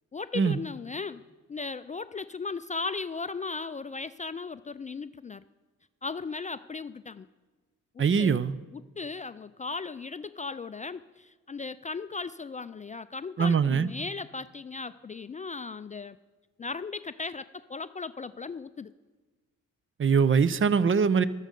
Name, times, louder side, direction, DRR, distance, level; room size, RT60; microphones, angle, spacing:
voice 1, 0.1-1.2 1.5-5.4 6.0-7.3 7.9-8.4 8.7-16.2 16.6-18.9, left 4 dB, 25° left, 14 dB, 0.3 m, -37 dB
voice 2, 8.0-8.6 13.4-13.9 20.0-21.2, right 6 dB, 40° right, 17 dB, 0.6 m, -22 dB
14.0 x 13.0 x 5.3 m, 1.3 s
supercardioid pair, 60°, 31 cm